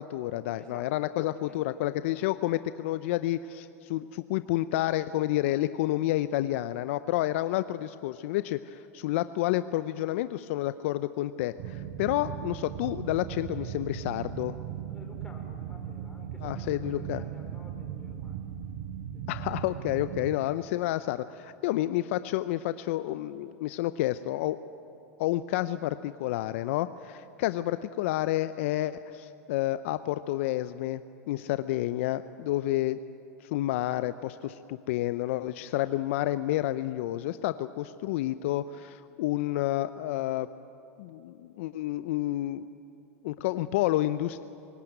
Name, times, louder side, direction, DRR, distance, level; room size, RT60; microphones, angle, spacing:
voice 1, 0.0-14.5 16.4-17.2 19.3-24.6 25.2-31.0 31.3-33.0 33.4-40.5 41.0-42.7 43.2-44.4, left 15 dB, 65° left, 13 dB, 0.6 m, -30 dB
voice 2, 0.5-1.0 1.4-1.8 14.9-18.5 19.1-19.3 35.6-35.7, left 2 dB, 10° left, 1 dB, 5.4 m, -52 dB
sound 1, 11.6-20.4, right 9 dB, 55° right, 1.2 m, -38 dB
24.5 x 17.0 x 9.2 m, 2.7 s
hypercardioid pair, 110°, 8 cm